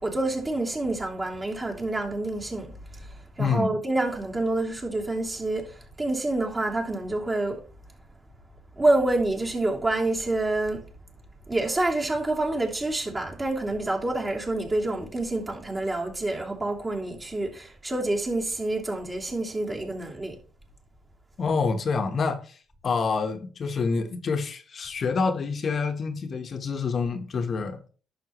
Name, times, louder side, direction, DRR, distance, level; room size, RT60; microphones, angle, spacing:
voice 1, 0.0-7.6 8.8-10.8 11.5-20.3, right 2 dB, 25° right, 3.0 m, -27 dB
voice 2, 3.4-3.8 21.4-27.8, left 4 dB, 50° left, 1.1 m, -27 dB
11.0 x 7.0 x 3.1 m
cardioid pair, 90°, 0 cm